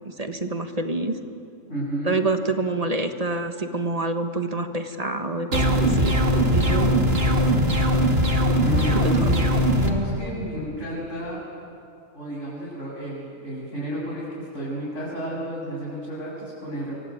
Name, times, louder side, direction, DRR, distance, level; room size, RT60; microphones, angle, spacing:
voice 1, 0.0-1.2 2.0-6.2 6.5-6.9, right 2 dB, 30° right, 7 dB, 1.5 m, -27 dB
voice 2, 1.7-2.2 8.6-9.3 9.7-11.4 12.1-16.9, equal, 60° left, -7 dB, 7.5 m, -31 dB
sound 1, 5.5-9.9, equal, 45° right, 2.5 m, -20 dB
26.5 x 23.5 x 9.4 m, 2.6 s
omnidirectional pair, 1.4 m